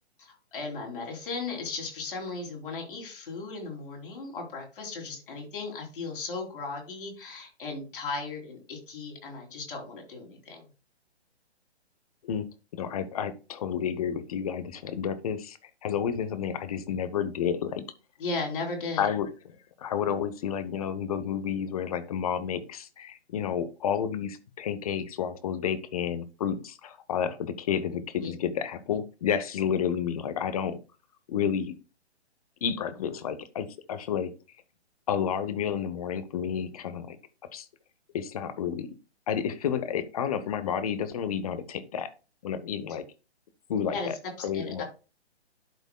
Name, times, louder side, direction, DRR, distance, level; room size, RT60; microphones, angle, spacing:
voice 1, 0.2-10.7 18.2-19.0 28.2-28.3 43.9-44.1 44.5-44.8, left 3 dB, 50° left, 0 dB, 3.2 m, -36 dB
voice 2, 12.7-17.8 19.0-19.3 19.8-30.8 31.3-31.7 32.6-34.3 35.1-37.2 37.5-37.7 38.1-38.9 39.3-42.1 42.4-43.0 43.7-44.2 44.4-44.8, left 8 dB, 35° left, 13 dB, 0.8 m, -30 dB
12.0 x 5.0 x 2.2 m, 0.31 s
figure-of-eight pair, 135°, 34 cm